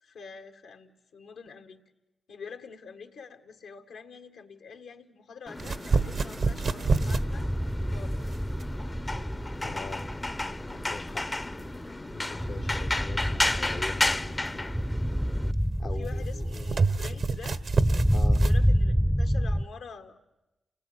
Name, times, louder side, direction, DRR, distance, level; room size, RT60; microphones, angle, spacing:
voice 1, 0.0-1.8 2.3-7.5 7.9-8.3 12.8-13.1 15.8-17.6 18.4-20.2, left 6 dB, 80° left, 5 dB, 1.9 m, -46 dB
sound 1, 5.5-15.5, left 2 dB, 25° left, 0.9 m, -33 dB
sound 2, 5.6-18.6, right 4 dB, 60° right, 1.4 m, -31 dB
sound 3, 6.9-19.7, equal, 5° right, 0.9 m, -28 dB
voice 2, 9.6-10.1 10.7-11.2 12.1-14.6 15.8-17.2 18.1-18.4, left 4 dB, 55° left, 5 dB, 1.1 m, -42 dB
29.0 x 19.0 x 9.6 m, 1.0 s
supercardioid pair, 40°, 0 cm